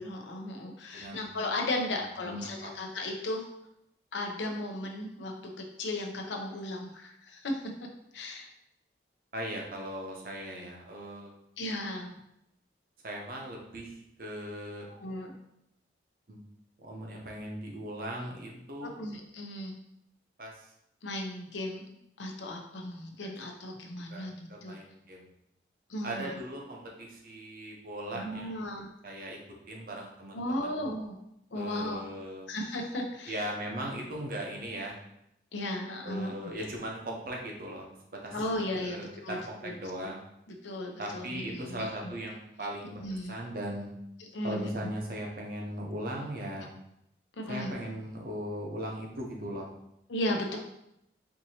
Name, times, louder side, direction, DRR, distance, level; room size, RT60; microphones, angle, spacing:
voice 1, 0.0-3.5 4.1-7.6 8.1-8.5 11.6-12.1 14.9-15.4 18.8-19.8 21.0-24.3 24.6-24.8 25.9-26.3 28.1-28.9 30.3-31.2 31.5-32.0 32.5-33.4 35.5-36.3 38.3-39.0 39.2-39.4 39.6-40.1 40.5-42.1 43.0-43.3 44.3-44.7 47.4-47.7 50.1-50.6, left 1 dB, 85° left, 2 dB, 0.7 m, -35 dB
voice 2, 0.9-1.3 1.9-2.7 9.3-11.3 13.0-14.9 16.3-16.4 16.8-19.0 20.4-20.7 23.2-23.3 24.1-25.3 26.0-28.6 29.0-29.4 29.7-30.8 31.5-32.5 33.3-35.0 36.0-37.9 38.2-40.2 41.0-43.0 43.3-43.9 44.4-46.7 47.5-49.7, right 1 dB, 50° right, -1 dB, 0.7 m, -38 dB
4.5 x 2.7 x 2.8 m, 0.80 s
head